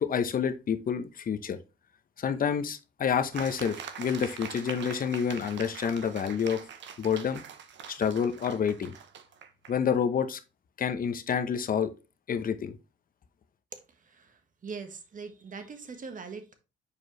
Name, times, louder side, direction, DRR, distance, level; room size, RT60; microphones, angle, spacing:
voice 1, 0.0-1.6 2.2-6.6 7.0-7.4 7.9-8.9 9.7-10.4 10.8-11.9 12.3-12.8, left 7 dB, 45° left, 0.8 m, -28 dB
sound 1, 3.3-9.7, right 7 dB, 65° right, 0.9 m, -43 dB
voice 2, 14.6-16.5, right 5 dB, 40° right, 1.3 m, -41 dB
6.9 x 4.7 x 3.1 m
cardioid pair, 90°, 20 cm